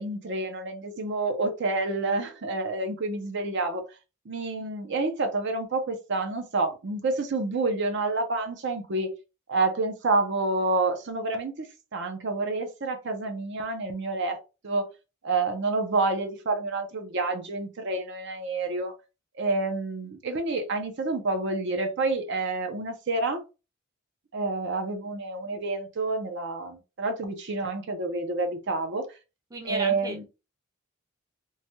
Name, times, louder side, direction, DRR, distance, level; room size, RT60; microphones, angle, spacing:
voice 1, 0.0-3.8 4.3-9.1 9.5-14.4 14.6-14.9 15.2-18.9 19.4-23.4 24.3-29.1 29.6-30.2, right 3 dB, 60° right, 6 dB, 0.6 m, -28 dB
voice 2, 29.5-30.2, right 2 dB, 20° right, 2 dB, 0.5 m, -34 dB
3.1 x 2.2 x 2.7 m, 0.29 s
head